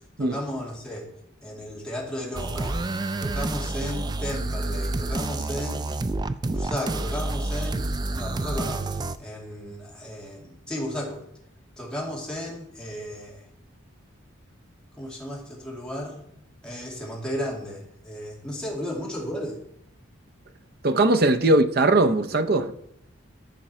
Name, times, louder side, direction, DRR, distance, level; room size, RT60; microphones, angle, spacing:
voice 1, 0.2-1.1 1.4-2.8 3.2-5.9 6.4-7.9 8.2-8.9 9.2-11.2 11.8-13.4 15.0-16.2 16.6-19.6 21.4-21.6, equal, 5° left, 2.3 m, -34 dB
sound 1, 2.3-9.2, right 2 dB, 20° right, 0.3 m, -29 dB
voice 2, 20.8-22.7, right 2 dB, 50° right, 0.7 m, -20 dB
14.0 x 5.2 x 4.3 m
head